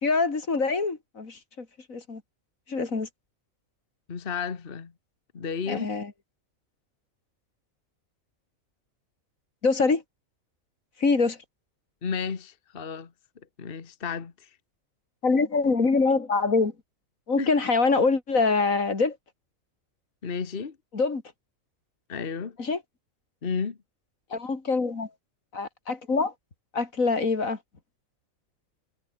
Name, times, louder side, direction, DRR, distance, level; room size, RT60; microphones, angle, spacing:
voice 1, 0.0-2.2 2.7-3.1 5.7-6.1 9.6-10.0 11.0-11.4 15.2-16.7 17.3-19.2 20.9-21.2 22.6-22.8 24.3-25.1 25.5-26.3 26.7-27.6, left 4 dB, 75° left, 3.2 m, -24 dB
voice 2, 4.1-4.9 5.3-5.9 12.0-13.1 13.6-14.5 17.4-17.5 20.2-20.7 22.1-22.6 23.4-23.8, left 6 dB, 45° left, 1.5 m, -32 dB
omnidirectional pair, 1.4 m